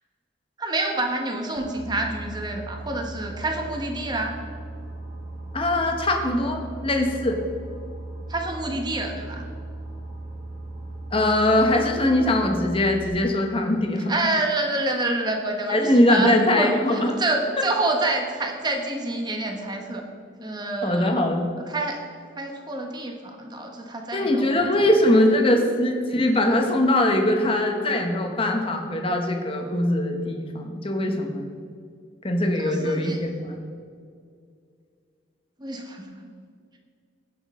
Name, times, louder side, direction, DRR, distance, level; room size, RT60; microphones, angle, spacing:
voice 1, 0.6-4.4 8.3-9.4 14.1-20.0 20.4-21.3 21.7-22.0 22.4-24.9 32.6-33.2 35.6-36.3, right 2 dB, 20° right, 2 dB, 1.1 m, -28 dB
Boat Water vehicle, 1.6-13.1, right 2 dB, 40° right, 1.9 m, -37 dB
voice 2, 5.5-7.4 11.1-14.1 15.7-17.2 20.8-21.4 24.1-31.5 32.2-33.6, left 1 dB, 25° left, 3 dB, 1.1 m, -21 dB
16.5 x 6.3 x 3.7 m, 2.2 s
head